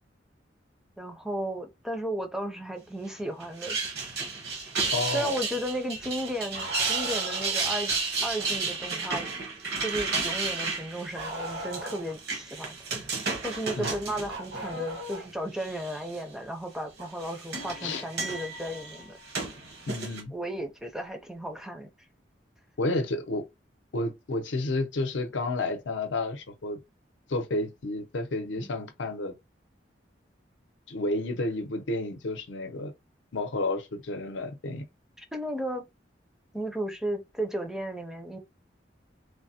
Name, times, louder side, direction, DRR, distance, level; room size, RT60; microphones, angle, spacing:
voice 1, 1.0-3.8 5.1-7.9 8.2-9.3 9.8-13.1 13.4-19.2 20.3-21.9 35.2-35.9 36.5-38.4, right 1 dB, 5° right, 0.4 m, -34 dB
sound 1, 3.4-15.2 15.6-16.2 17.0-20.2, right 4 dB, 60° right, 0.9 m, -33 dB
voice 2, 4.9-5.4 13.8-14.0 17.8-18.0 19.9-20.3 22.8-23.4 23.9-26.8 27.3-29.3 30.9-32.9 33.3-34.8, left 2 dB, 85° left, 0.6 m, -31 dB
Bark, 6.5-7.6 11.2-12.2 13.8-15.3 17.0-17.1 19.0-19.1 20.2-20.3, right 1 dB, 75° right, 1.6 m, -38 dB
3.2 x 2.0 x 2.7 m
head